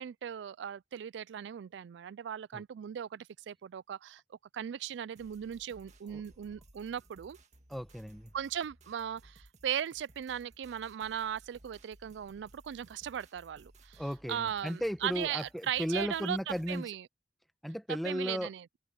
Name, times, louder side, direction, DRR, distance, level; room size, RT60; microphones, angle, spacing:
voice 1, 0.0-4.2 4.5-7.4 8.3-14.0 14.3-16.4 16.7-17.1 18.0-18.7, right 9 dB, 85° right, 0.3 m, -38 dB
sound 1, 5.2-16.9, right 2 dB, 40° right, 1.9 m, -60 dB
voice 2, 7.7-8.3 14.0-16.9 17.6-18.5, equal, ahead, 1.0 m, -35 dB
head